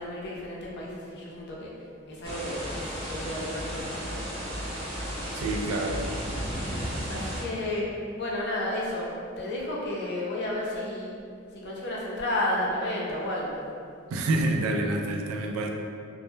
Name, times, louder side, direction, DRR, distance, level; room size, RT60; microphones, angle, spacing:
voice 1, 0.0-1.7 2.1-4.2 7.1-7.9 8.2-9.1 9.4-11.1 11.5-13.6, left 1 dB, 55° left, -4 dB, 0.5 m, -32 dB
sound 1, 2.2-7.4, equal, 30° right, 0.7 m, -34 dB
voice 2, 5.3-6.1 14.1-15.7, right 2 dB, 85° right, 7 dB, 0.3 m, -27 dB
2.0 x 2.0 x 3.1 m, 2.4 s
head